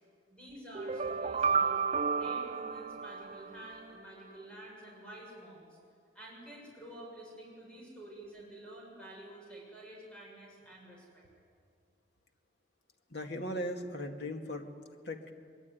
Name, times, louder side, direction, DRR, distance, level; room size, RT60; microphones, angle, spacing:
voice 1, 0.3-1.8 2.1-5.8 6.1-11.2, right 1 dB, 5° left, -3 dB, 6.8 m, -49 dB
sound 1, 0.7-3.8, right 5 dB, 35° right, 0.6 m, -32 dB
voice 2, 13.1-14.7 15.1-15.3, equal, 60° left, 4 dB, 2.2 m, -38 dB
23.0 x 22.5 x 9.5 m, 2.2 s
head